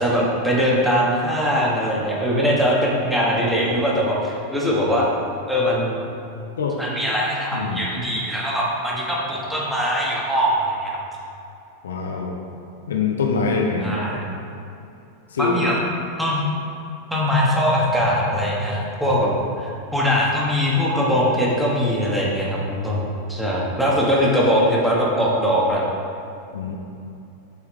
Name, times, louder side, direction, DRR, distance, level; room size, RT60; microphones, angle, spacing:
voice 1, 0.0-5.1 5.5-6.0 6.8-11.0 13.8-14.2 15.4-15.8 16.2-16.4 17.1-19.3 19.6-25.8, equal, 5° right, -5 dB, 1.2 m, -21 dB
voice 2, 7.5-7.9 11.8-12.4 12.9-14.2 15.3-15.6 26.5-26.8, left 4 dB, 65° left, 1 dB, 0.6 m, -24 dB
6.9 x 4.8 x 3.2 m, 2.7 s
figure-of-eight pair, 90°, 0 cm